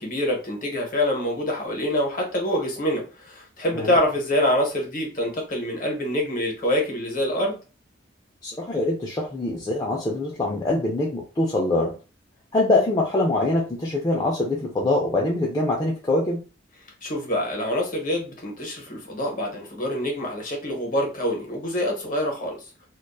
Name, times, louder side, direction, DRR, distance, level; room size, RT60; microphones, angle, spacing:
voice 1, 0.0-7.6 17.0-22.6, left 1 dB, 40° left, 1 dB, 0.8 m, -26 dB
voice 2, 8.4-11.9 12.5-16.4, left 2 dB, 20° left, -3 dB, 0.3 m, -24 dB
2.5 x 2.2 x 2.3 m, 0.33 s
head